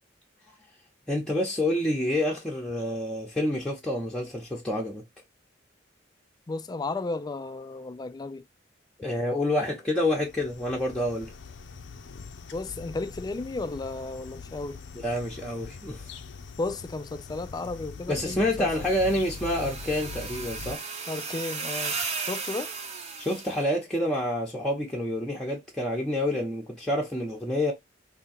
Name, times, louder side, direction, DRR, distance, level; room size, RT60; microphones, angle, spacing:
voice 1, 1.1-5.0 9.0-11.3 14.9-16.1 18.1-20.8 23.2-27.7, left 1 dB, 5° left, 0.9 m, -28 dB
voice 2, 6.5-8.5 12.5-14.8 16.6-18.7 21.1-22.7, left 3 dB, 20° left, 0.4 m, -34 dB
sound 1, 10.0-20.8, left 5 dB, 70° left, 0.6 m, -43 dB
sound 2, 18.7-23.6, right 4 dB, 35° right, 0.9 m, -35 dB
3.7 x 2.8 x 4.3 m
head